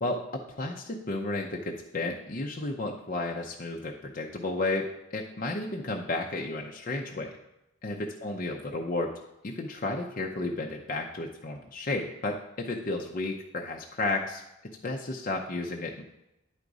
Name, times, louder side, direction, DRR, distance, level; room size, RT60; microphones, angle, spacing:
voice 1, 0.0-7.3 7.8-9.1 9.4-14.4 14.8-16.0, left 2 dB, 45° left, 0 dB, 0.6 m, -32 dB
9.8 x 4.8 x 4.0 m, 0.87 s
head